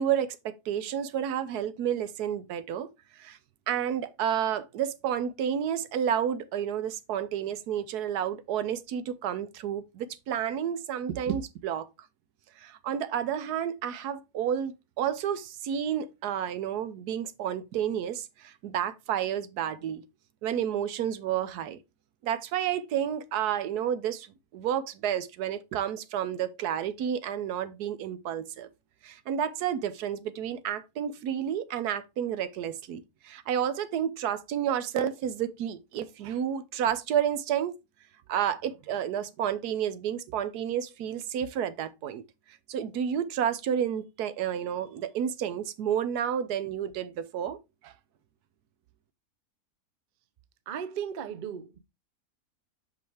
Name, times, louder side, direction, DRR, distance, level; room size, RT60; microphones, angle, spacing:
voice 1, 0.0-2.9 3.1-3.4 3.7-11.9 12.6-20.0 20.4-21.8 22.2-24.3 24.5-28.7 29.0-37.7 38.3-42.2 42.7-47.6 47.8-47.9, right 9 dB, 85° right, 1.3 m, -30 dB
voice 2, 50.7-51.8, right 8 dB, 55° right, 0.5 m, -36 dB
6.0 x 5.4 x 3.3 m
omnidirectional pair, 1.6 m